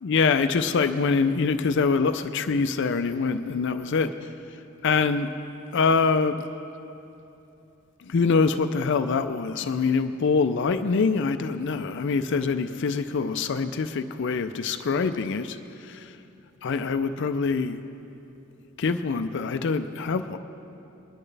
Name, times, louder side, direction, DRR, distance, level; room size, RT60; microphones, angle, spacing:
voice 1, 0.0-4.1 4.8-5.3 5.7-6.4 8.1-15.6 15.9-16.1 16.6-17.8 18.8-20.4, left 4 dB, 60° left, 9 dB, 0.4 m, -24 dB
21.5 x 11.0 x 3.3 m, 2.8 s
head